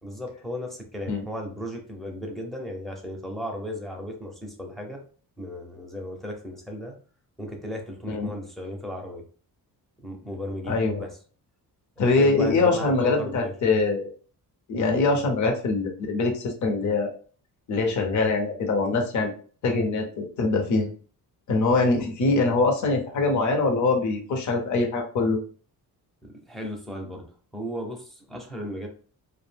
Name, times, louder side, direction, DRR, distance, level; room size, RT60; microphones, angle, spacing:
voice 1, 0.0-5.0 5.4-7.0 7.4-9.2 10.0-11.1 12.0-13.5 26.2-27.3 27.5-28.9, equal, ahead, 1 dB, 0.5 m, -35 dB
voice 2, 10.7-11.0 12.0-14.1 14.7-17.1 17.7-19.3 19.6-20.9 21.5-25.4, left 3 dB, 50° left, 2 dB, 0.6 m, -23 dB
2.4 x 2.0 x 3.2 m, 0.41 s
wide cardioid pair, 140°, 38 cm